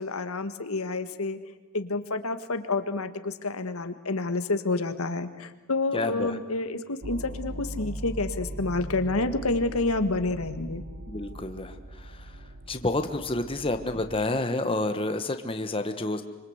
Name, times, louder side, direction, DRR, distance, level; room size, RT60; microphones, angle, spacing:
voice 1, 0.0-1.4 1.7-10.8, left 3 dB, 80° left, 9 dB, 1.7 m, -29 dB
voice 2, 5.9-6.4 11.1-16.2, left 2 dB, 25° left, 7 dB, 1.3 m, -30 dB
sound 1, 7.0-14.3, right 1 dB, 80° right, 1.8 m, -40 dB
26.0 x 25.5 x 8.1 m, 1.1 s
head